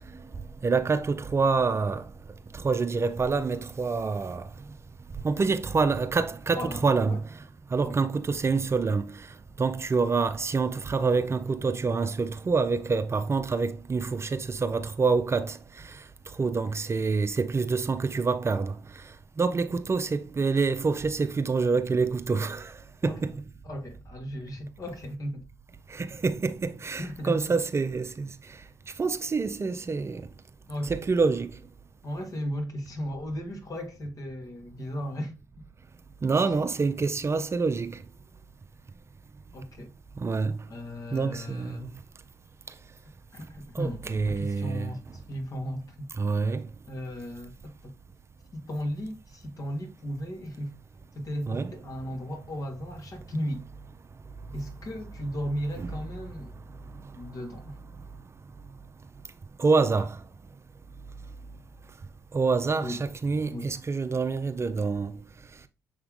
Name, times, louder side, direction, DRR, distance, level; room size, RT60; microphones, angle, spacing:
voice 1, 0.6-2.0 2.5-4.4 5.2-7.2 7.7-9.0 9.6-15.6 16.4-18.7 19.4-22.7 23.0-23.2 25.9-28.3 29.0-30.2 30.8-31.5 36.2-38.0 40.2-40.5 41.1-41.9 43.8-44.9 46.2-46.6 51.5-51.7 55.8-55.9 59.6-60.2 62.3-65.1, right 4 dB, 35° right, 0.7 m, -26 dB
voice 2, 6.6-7.2 7.8-8.0 23.0-23.2 23.6-25.5 27.0-27.5 30.7-31.0 32.0-35.3 39.5-39.9 40.7-41.9 43.3-46.1 46.9-47.9 48.5-50.8 51.1-53.6 54.5-56.5 57.2-57.8 62.8-63.0 63.5-63.7, equal, 45° left, 1.9 m, -36 dB
7.0 x 3.6 x 3.7 m
supercardioid pair, 60°, 8 cm